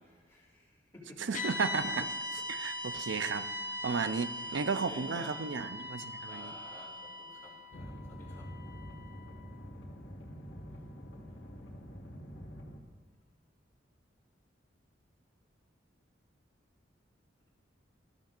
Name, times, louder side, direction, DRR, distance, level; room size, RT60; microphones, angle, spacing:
voice 1, 0.0-1.3 2.9-3.1 3.8-4.0 4.4-5.4 6.0-8.5 11.3-11.4, left 1 dB, 15° left, -5 dB, 3.1 m, -54 dB
voice 2, 1.2-3.5 3.8-6.5, right 5 dB, 80° right, 11 dB, 0.5 m, -34 dB
sound 1, 1.3-9.6, left 1 dB, 45° left, 1.1 m, -40 dB
sound 2, 7.7-12.8, equal, 80° left, 1.6 m, -46 dB
17.0 x 13.5 x 2.5 m, 1.4 s
head